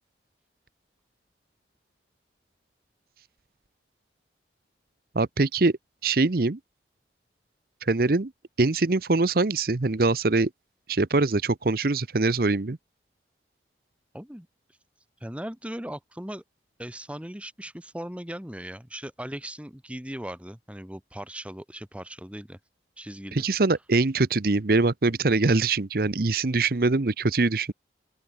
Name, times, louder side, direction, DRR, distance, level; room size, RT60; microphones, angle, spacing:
voice 1, 5.1-5.7 6.0-6.6 7.8-8.3 8.6-10.5 10.9-12.8 23.3-27.7, right 3 dB, 55° right, 0.8 m, -23 dB
voice 2, 14.1-14.5 15.2-16.4 16.8-22.6 23.0-23.4, right 1 dB, 5° right, 1.4 m, -38 dB
open air
head